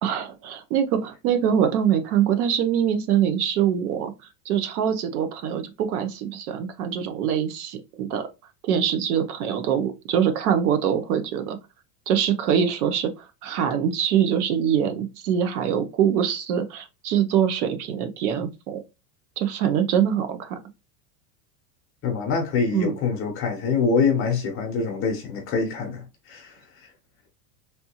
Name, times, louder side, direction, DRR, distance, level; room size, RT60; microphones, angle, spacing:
voice 1, 0.0-4.1 4.5-8.2 8.6-11.6 12.1-18.8 19.4-20.6 22.7-22.9, right 8 dB, 65° right, 0.8 m, -24 dB
voice 2, 22.0-26.9, left 5 dB, 30° left, 0.7 m, -25 dB
3.3 x 2.8 x 2.8 m
supercardioid pair, 155°, 47 cm